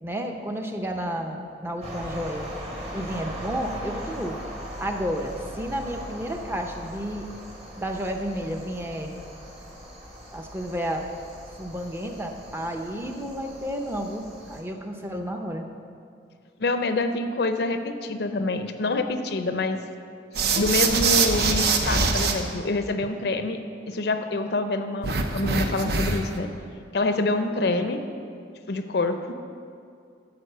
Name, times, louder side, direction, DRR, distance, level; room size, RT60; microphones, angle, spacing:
voice 1, 0.0-2.5 2.9-4.4 4.8-7.3 7.8-9.1 10.3-11.0 11.6-15.7, equal, 15° right, 3 dB, 0.6 m, -31 dB
sound 1, 1.8-14.6, equal, 35° right, 1.5 m, -39 dB
voice 2, 16.6-19.8 20.5-23.6 23.9-26.5 26.9-28.0 28.7-29.3, left 2 dB, 60° left, 8 dB, 0.5 m, -26 dB
sound 2, 20.3-22.3 25.0-26.4, right 4 dB, 60° right, 0.8 m, -23 dB
11.0 x 4.7 x 6.7 m, 2.4 s
head